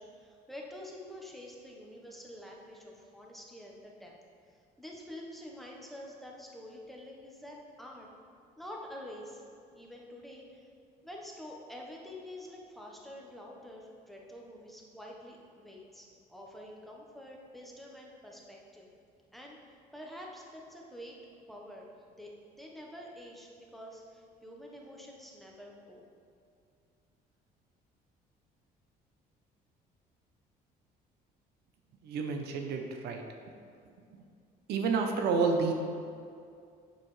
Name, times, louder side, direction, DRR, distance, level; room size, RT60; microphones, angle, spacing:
voice 1, 0.0-4.1 4.8-8.1 8.6-9.4 9.7-10.7 11.0-18.9 19.3-21.2 21.5-26.0, left 1 dB, ahead, -2 dB, 1.1 m, -47 dB
voice 2, 32.0-33.2 34.1-34.2 34.7-35.7, right 4 dB, 80° right, 3 dB, 0.7 m, -29 dB
7.5 x 6.7 x 3.2 m, 2.4 s
cardioid pair, 110°, 17 cm